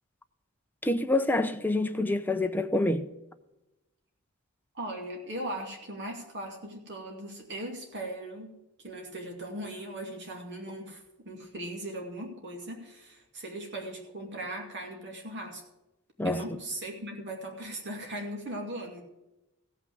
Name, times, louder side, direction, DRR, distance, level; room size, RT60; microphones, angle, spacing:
voice 1, 0.8-3.1 16.2-16.4, left 2 dB, 10° left, 0.7 m, -27 dB
voice 2, 4.7-8.6 8.8-15.6 16.2-19.0, right 1 dB, 55° right, 2.4 m, -39 dB
15.5 x 5.9 x 7.7 m
head